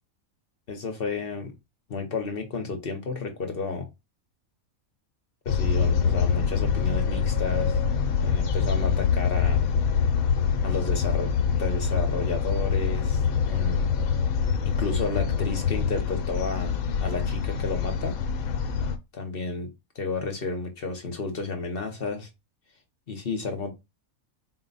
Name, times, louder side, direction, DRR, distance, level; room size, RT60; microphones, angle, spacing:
voice 1, 0.7-1.5 1.9-3.9 5.4-7.8 8.2-9.6 10.6-13.2 13.5-13.9 14.6-18.2 19.1-19.7 19.9-22.3 23.1-23.7, left 4 dB, 50° left, 0.9 m, -32 dB
sound 1, 5.5-19.0, left 6 dB, 80° left, 1.1 m, -25 dB
4.1 x 2.1 x 3.9 m
omnidirectional pair, 1.5 m